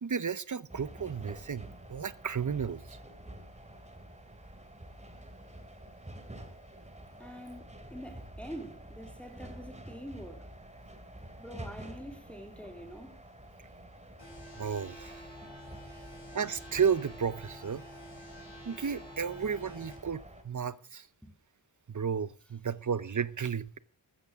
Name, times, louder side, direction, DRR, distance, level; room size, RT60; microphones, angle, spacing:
voice 1, 0.0-3.0 14.6-15.2 16.3-17.8 18.6-21.1 21.9-23.8, right 6 dB, 40° right, 0.8 m, -33 dB
sound 1, 0.7-20.4, right 1 dB, 15° right, 2.6 m, -49 dB
voice 2, 7.2-10.5 11.4-13.2 15.9-16.1 21.2-21.3, equal, 5° left, 2.8 m, -45 dB
sound 2, 14.2-19.9, equal, 65° left, 6.7 m, -49 dB
15.0 x 13.0 x 3.6 m
cardioid pair, 60°, 45 cm